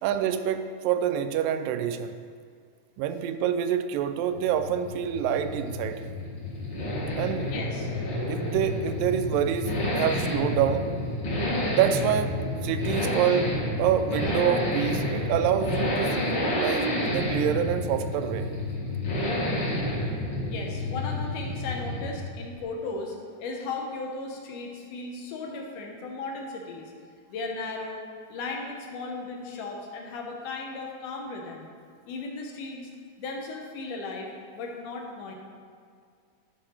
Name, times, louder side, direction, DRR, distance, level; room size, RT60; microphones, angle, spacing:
voice 1, 0.0-2.2 3.0-6.0 7.2-7.5 8.3-10.9 11.7-12.3 12.6-18.5, right 9 dB, 90° right, 9 dB, 2.2 m, -27 dB
Accelerating revving vroom, 4.1-22.3 22.6-22.7, left 1 dB, 40° left, 1.9 m, -29 dB
voice 2, 7.5-7.9 20.5-26.9 27.3-28.0 28.3-31.7 32.1-32.9 33.2-34.3 34.5-35.3, left 3 dB, 75° left, 1 dB, 2.4 m, -36 dB
10.5 x 5.2 x 4.4 m, 2.1 s
omnidirectional pair, 3.9 m